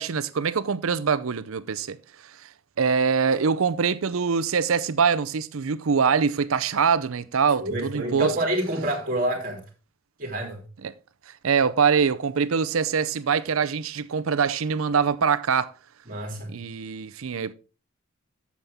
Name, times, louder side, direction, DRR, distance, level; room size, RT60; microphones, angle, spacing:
voice 1, 0.0-2.0 2.4-2.5 2.8-8.3 10.8-10.9 11.4-15.7 16.5-17.5, right 6 dB, 75° right, 0.6 m, -24 dB
voice 2, 7.6-9.6 10.2-10.6 16.1-16.5, right 1 dB, 40° right, 3.0 m, -27 dB
9.3 x 7.4 x 3.5 m
head